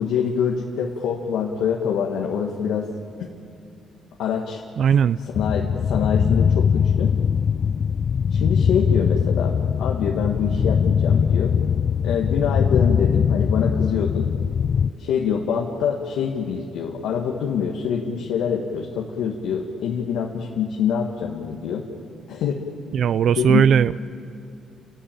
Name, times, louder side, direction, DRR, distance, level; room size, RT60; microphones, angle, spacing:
voice 1, 0.0-2.9 4.2-4.6 5.3-7.1 8.3-9.5 9.8-11.5 12.0-14.3 15.0-21.8 22.3-22.6 23.4-23.6, left 7 dB, 85° left, 0 dB, 1.8 m, -25 dB
voice 2, 4.8-5.2 22.9-23.9, right 8 dB, 65° right, 16 dB, 0.5 m, -18 dB
sound 1, 5.3-14.9, left 7 dB, 50° left, 0.4 m, -21 dB
30.0 x 13.0 x 8.9 m, 2.5 s
cardioid pair, 90°, 0 cm